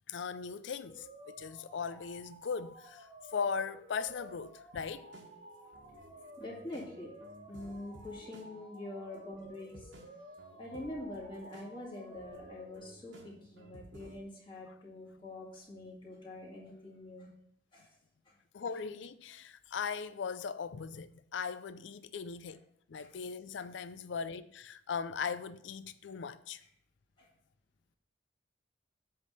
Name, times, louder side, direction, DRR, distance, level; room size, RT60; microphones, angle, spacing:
voice 1, 0.1-5.1 18.5-22.6 22.9-26.6, left 6 dB, 70° left, 0.4 m, -39 dB
sound 1, 0.8-12.8, right 1 dB, 40° right, 1.2 m, -54 dB
sound 2, 5.0-14.2, right 1 dB, 75° right, 1.4 m, -56 dB
voice 2, 6.4-7.1 7.5-9.9 10.6-17.3 17.7-17.9 18.3-18.4 23.0-23.1 27.2-27.3, left 1 dB, 25° left, 2.2 m, -45 dB
7.8 x 3.5 x 6.5 m
head